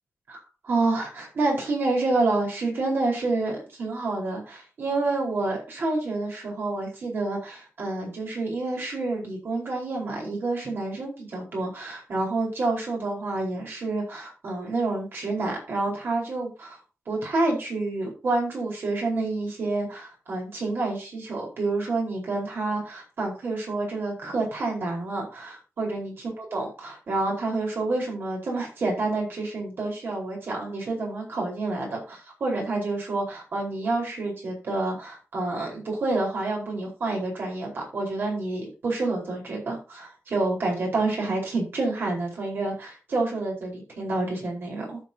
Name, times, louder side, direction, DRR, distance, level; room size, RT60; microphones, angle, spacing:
voice 1, 0.6-16.8 17.1-45.0, right 2 dB, 50° right, -1 dB, 4.8 m, -28 dB
14.0 x 7.1 x 2.9 m, 0.31 s
wide cardioid pair, 180°, 5 cm